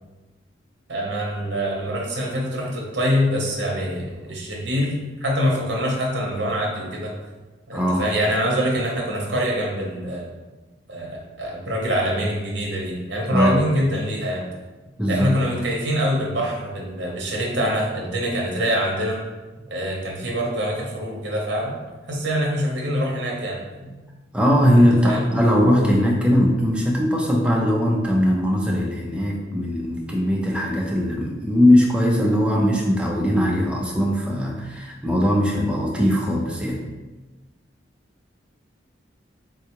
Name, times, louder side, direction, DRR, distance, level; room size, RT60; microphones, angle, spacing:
voice 1, 0.9-7.2 7.7-10.3 10.9-14.5 15.1-19.2 19.7-21.8 22.1-23.6 24.7-25.3, equal, 65° right, -1 dB, 0.8 m, -25 dB
voice 2, 7.7-8.1 13.3-13.6 15.0-15.3 23.8-23.9 24.3-36.8, equal, 5° right, -2 dB, 0.4 m, -20 dB
3.7 x 2.3 x 2.9 m, 1.2 s
head